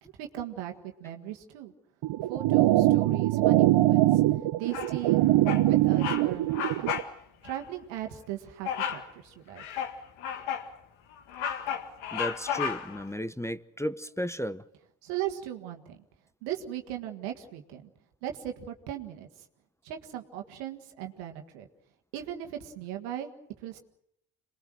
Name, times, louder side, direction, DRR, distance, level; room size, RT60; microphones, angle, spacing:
voice 1, 0.0-1.7 2.3-5.2 5.7-7.0 7.4-9.6 15.0-16.0 16.4-17.9 18.2-19.3 19.8-21.7 22.1-23.3 23.6-23.8, right 11 dB, 85° right, 1.8 m, -38 dB
sound 1, 2.0-7.0, right 16 dB, 65° right, 0.9 m, -23 dB
Bird vocalization bird call bird song, 4.7-5.1 5.5-5.7 6.0-6.3 6.5-7.1 7.4-7.6 8.7-9.1 9.6-10.7 11.1-13.0, left 8 dB, 75° left, 2.1 m, -33 dB
voice 2, 12.1-14.6, equal, 5° left, 0.9 m, -34 dB
27.5 x 20.5 x 6.4 m
hypercardioid pair, 45°, 48 cm